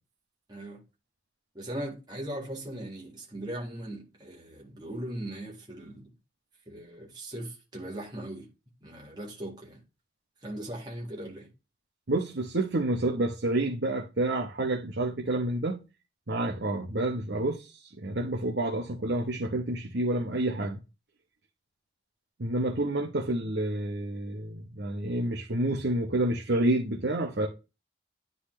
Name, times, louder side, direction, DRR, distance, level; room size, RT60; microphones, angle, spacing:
voice 1, 0.5-0.8 1.5-6.1 6.7-8.5 8.8-9.8 10.4-11.5, right 1 dB, 25° right, 1.8 m, -39 dB
voice 2, 12.1-15.8 16.3-17.7 18.0-20.8 22.4-27.5, right 1 dB, 70° right, 1.0 m, -29 dB
9.9 x 4.0 x 3.2 m
head